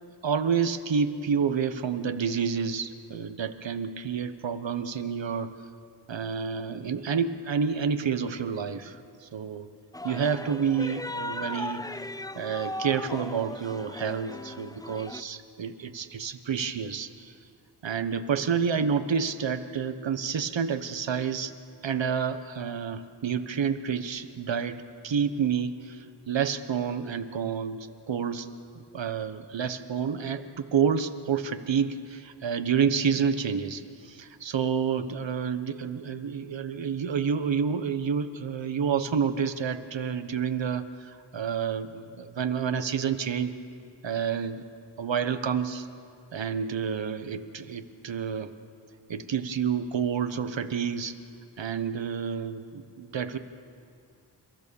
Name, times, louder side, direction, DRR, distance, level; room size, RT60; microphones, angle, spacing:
voice 1, 0.2-5.5 6.1-9.7 10.0-11.9 12.3-17.3 17.8-21.5 21.8-28.5 28.7-43.5 44.0-44.6 45.0-45.9 46.3-48.5 49.1-51.2 51.6-53.4, right 7 dB, 80° right, 10 dB, 1.2 m, -29 dB
sound 1, 9.9-15.2, left 1 dB, 10° left, 0.5 m, -37 dB
29.5 x 15.5 x 7.1 m, 2.4 s
wide cardioid pair, 85°, 44 cm